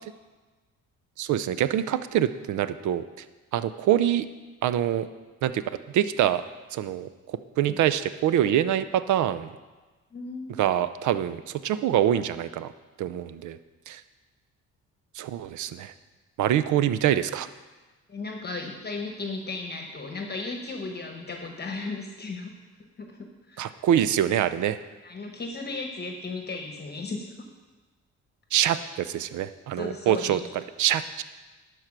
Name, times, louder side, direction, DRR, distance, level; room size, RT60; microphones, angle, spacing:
voice 1, 1.2-3.2 3.5-4.3 4.6-5.1 5.4-5.6 5.9-6.4 6.7-9.5 10.6-12.7 13.0-13.6 13.9-14.0 15.1-15.9 16.4-17.5 23.6-24.8 28.5-30.4 30.8-31.2, right 11 dB, 75° right, 13 dB, 0.6 m, -25 dB
voice 2, 10.1-10.5 18.1-22.5 23.0-23.7 25.0-27.3 29.8-30.4, left 3 dB, 35° left, 3 dB, 1.1 m, -35 dB
11.5 x 4.7 x 6.0 m, 1.3 s
cardioid pair, 90°, 30 cm